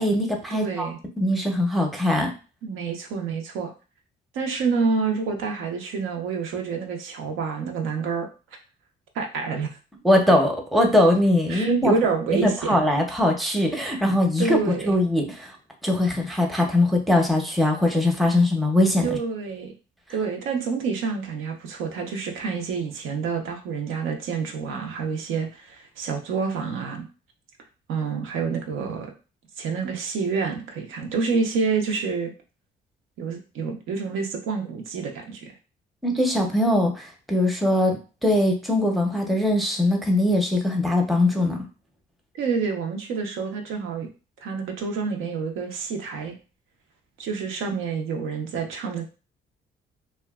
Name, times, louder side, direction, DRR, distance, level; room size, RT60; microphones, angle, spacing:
voice 1, 0.0-0.9 1.2-2.3 10.0-11.9 12.3-14.6 14.8-15.5 15.8-19.1 36.0-41.7, left 1 dB, ahead, 1 dB, 0.6 m, -21 dB
voice 2, 0.5-1.0 2.6-3.7 4.3-8.3 9.1-9.7 11.5-12.8 14.4-14.9 19.0-19.7 20.1-27.0 27.9-29.1 29.6-32.3 33.2-35.5 42.3-44.1 44.4-46.3 47.2-49.0, right 5 dB, 90° right, 3 dB, 0.6 m, -28 dB
2.7 x 2.2 x 2.3 m, 0.33 s
cardioid pair, 90°, 20 cm